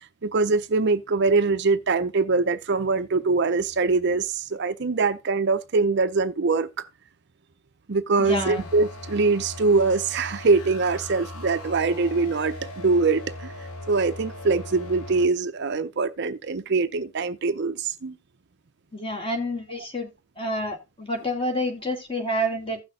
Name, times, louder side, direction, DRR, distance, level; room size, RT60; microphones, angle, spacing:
voice 1, 0.2-6.9 7.9-18.2, right 4 dB, 50° right, 0.5 m, -23 dB
sound 1, 8.2-15.3, left 1 dB, 85° left, 1.4 m, -39 dB
voice 2, 8.2-8.7 18.9-20.1 20.4-22.8, equal, 25° left, 2.2 m, -28 dB
16.0 x 6.1 x 2.4 m
head